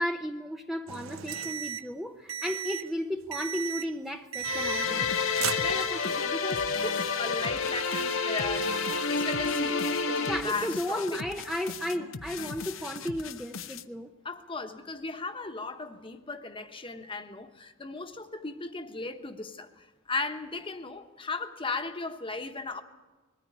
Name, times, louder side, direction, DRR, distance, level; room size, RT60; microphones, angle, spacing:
voice 1, 0.0-5.1 10.3-14.1, equal, ahead, 4 dB, 0.7 m, -34 dB
sound 1, 0.9-1.9 2.3-2.9 3.3-3.9 4.3-5.1 5.3-6.2, right 9 dB, 90° right, 0.8 m, -35 dB
sound 2, 4.4-10.4, left 4 dB, 90° left, 1.5 m, -29 dB
sound 3, 4.8-13.8, left 5 dB, 75° left, 0.8 m, -41 dB
voice 2, 5.6-8.7 9.1-11.2 14.2-22.8, left 3 dB, 25° left, 7 dB, 1.2 m, -36 dB
21.0 x 14.5 x 9.9 m, 1.3 s
head